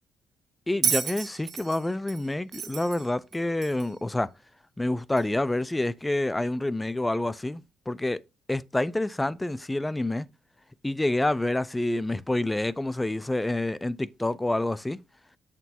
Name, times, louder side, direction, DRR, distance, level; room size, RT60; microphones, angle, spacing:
voice 1, 0.7-4.3 4.8-8.2 8.5-10.3 10.8-15.0, left 1 dB, 10° left, 0.4 m, -28 dB
Bell, 0.8-4.0 5.2-5.3, right 8 dB, 60° right, 1.3 m, -32 dB
6.9 x 6.0 x 2.8 m
cardioid pair, 90°, 0 cm